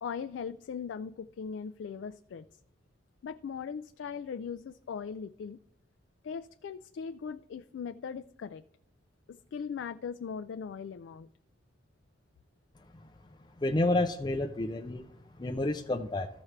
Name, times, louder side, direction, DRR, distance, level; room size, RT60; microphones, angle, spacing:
voice 1, 0.0-2.4 3.2-5.6 6.2-8.6 9.3-11.3, left 6 dB, 80° left, 11 dB, 0.3 m, -39 dB
voice 2, 13.6-15.0 15.4-16.3, left 2 dB, 25° left, 4 dB, 0.5 m, -29 dB
14.0 x 6.0 x 3.2 m, 0.80 s
head